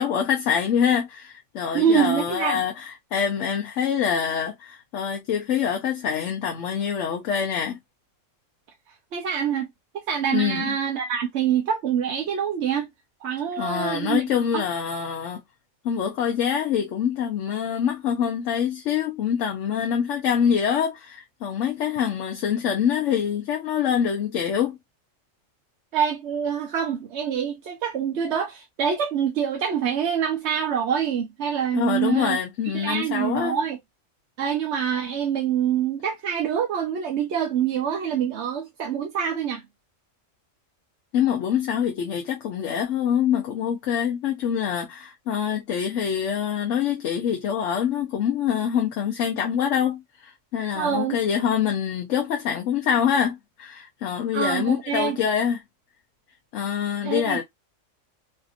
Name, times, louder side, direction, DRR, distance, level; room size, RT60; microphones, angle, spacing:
voice 1, 0.0-7.8 10.3-10.7 13.6-15.4 15.8-24.8 31.7-33.6 41.1-55.6 56.5-57.4, left 8 dB, 75° left, 1.0 m, -25 dB
voice 2, 1.7-2.6 9.1-9.7 9.9-12.9 13.2-14.2 14.5-14.6 25.9-32.4 32.7-33.8 34.4-39.6 50.6-51.2 54.3-55.2 57.0-57.4, right 8 dB, 65° right, 0.9 m, -25 dB
3.3 x 2.7 x 2.4 m
omnidirectional pair, 1.3 m